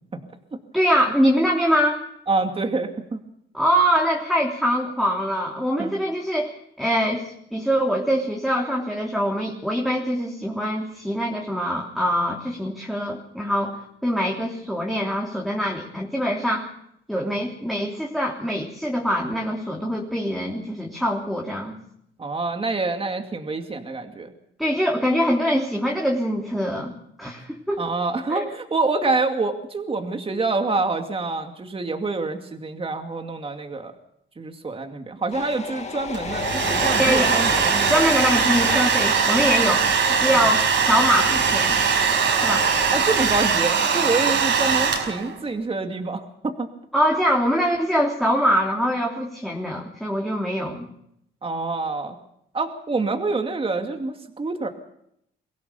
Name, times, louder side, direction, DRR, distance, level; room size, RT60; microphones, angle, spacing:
voice 1, 0.7-2.0 3.5-16.7 17.1-21.7 24.6-26.9 27.2-27.9 28.3-28.5 37.0-37.3 37.9-39.8 40.2-41.8 42.4-42.7 46.9-50.9, equal, ahead, -1 dB, 3.4 m, -23 dB
voice 2, 2.3-3.2 5.8-6.0 22.2-24.3 27.8-33.9 34.4-38.0 40.3-40.5 42.9-46.7 51.4-52.2 52.5-54.7, right 3 dB, 30° right, 5 dB, 2.4 m, -26 dB
sound 1, 35.3-43.2, left 4 dB, 35° left, 2.4 m, -33 dB
Domestic sounds home sounds, 36.1-45.3, right 6 dB, 70° right, 5.2 m, -21 dB
23.5 x 16.5 x 7.0 m, 0.75 s
cardioid pair, 90°, 20 cm